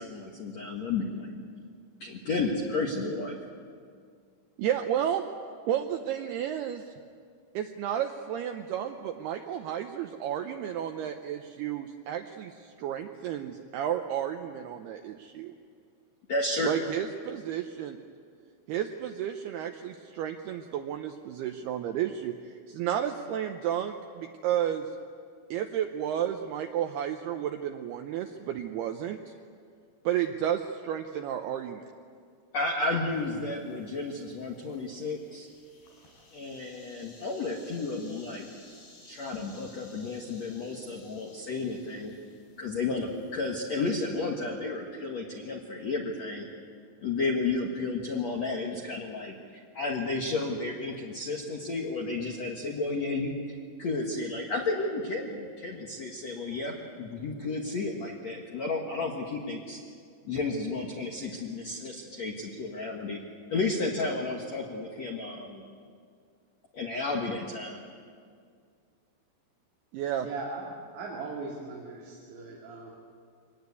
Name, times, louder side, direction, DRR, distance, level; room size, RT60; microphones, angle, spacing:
voice 1, 0.0-1.4 2.0-3.4 16.3-16.7 32.5-35.5 36.3-38.5 39.0-42.1 42.6-46.5 47.0-59.8 60.2-63.2 63.5-65.6 66.7-67.8, left 3 dB, 75° left, 0 dB, 1.5 m, -32 dB
voice 2, 4.6-5.3 5.7-6.9 7.5-15.5 16.6-18.0 18.7-24.9 25.5-29.2 30.1-31.8 69.9-70.3, right 10 dB, 85° right, 5 dB, 2.2 m, -32 dB
sound 1, 33.1-44.1, left 2 dB, 50° left, 6.7 m, -57 dB
voice 3, 70.2-70.7 70.9-72.9, right 3 dB, 65° right, -2 dB, 4.5 m, -39 dB
24.0 x 19.5 x 8.3 m, 2.2 s
omnidirectional pair, 5.7 m